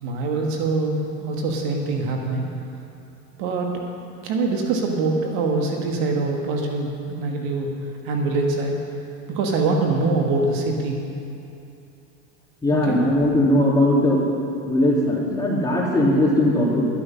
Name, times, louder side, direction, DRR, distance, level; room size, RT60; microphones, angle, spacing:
voice 1, 0.0-2.5 3.4-3.7 4.2-7.7 8.1-8.7 9.3-11.0 12.8-13.0, right 3 dB, 65° right, 1 dB, 1.7 m, -24 dB
voice 2, 12.6-14.2 14.7-16.9, left 1 dB, 10° left, -5 dB, 2.8 m, -19 dB
12.0 x 8.5 x 5.7 m, 2.8 s
supercardioid pair, 105°, 39 cm